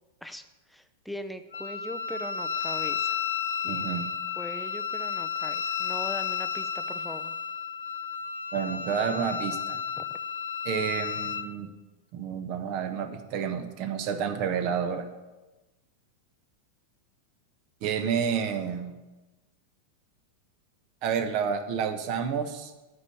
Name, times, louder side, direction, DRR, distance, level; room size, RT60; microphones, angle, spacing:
voice 1, 0.7-3.2 3.6-4.1 4.4-7.3 10.0-10.1 14.6-14.7, left 1 dB, ahead, 9 dB, 0.7 m, -40 dB
Wind instrument woodwind instrument, 1.5-11.5, left 7 dB, 70° left, 0.5 m, -32 dB
voice 2, 3.7-4.0 8.5-9.8 10.6-11.7 12.1-15.1 17.8-19.0 21.0-22.7, right 7 dB, 45° right, 7 dB, 1.2 m, -30 dB
9.8 x 5.4 x 8.1 m, 1.1 s
figure-of-eight pair, 90°, 0 cm